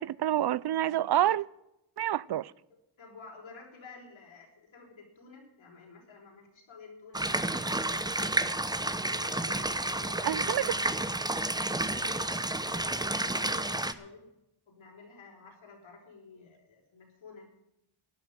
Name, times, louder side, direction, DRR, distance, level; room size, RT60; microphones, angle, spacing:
voice 1, 0.0-1.5 2.0-2.5 10.2-10.8, right 12 dB, 55° right, 0.5 m, -28 dB
voice 2, 2.7-7.4 7.7-8.5 9.2-11.0 11.7-14.3 14.7-17.7, left 4 dB, 80° left, 4.5 m, -51 dB
sound 1, 7.1-13.9, right 2 dB, 10° right, 0.8 m, -31 dB
12.0 x 9.7 x 8.8 m
cardioid pair, 70°, 47 cm